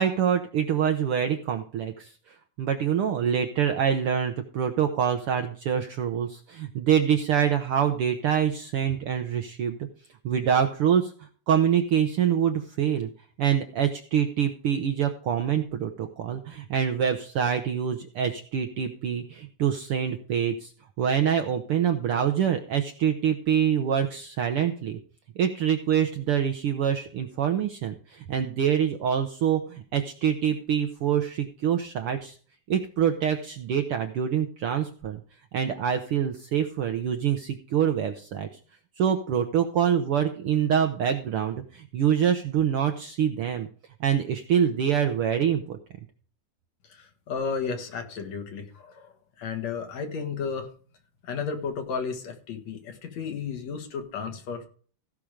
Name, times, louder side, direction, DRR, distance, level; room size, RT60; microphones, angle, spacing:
voice 1, 0.0-9.8 10.2-13.1 13.4-20.7 21.0-25.0 25.4-32.3 32.7-35.2 35.5-38.6 39.0-43.7 44.0-45.8, right 8 dB, 70° right, 6 dB, 1.4 m, -25 dB
voice 2, 46.8-49.1 49.4-50.7 51.2-54.7, left 5 dB, 65° left, 6 dB, 2.8 m, -33 dB
15.5 x 6.0 x 5.0 m, 0.43 s
omnidirectional pair, 3.4 m